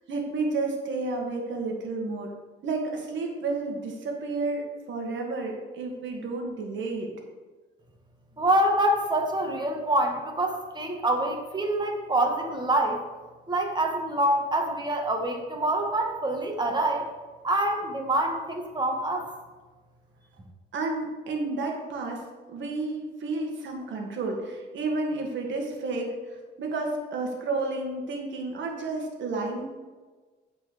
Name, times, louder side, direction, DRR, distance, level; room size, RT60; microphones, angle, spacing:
voice 1, 0.1-2.3 2.6-7.1 20.7-22.2 22.5-29.6, right 3 dB, 70° right, 1 dB, 1.8 m, -31 dB
voice 2, 8.4-13.0 13.5-17.1 17.4-19.3, right 1 dB, 20° right, 2 dB, 1.7 m, -26 dB
8.8 x 4.5 x 6.7 m, 1.3 s
cardioid pair, 90°, 20 cm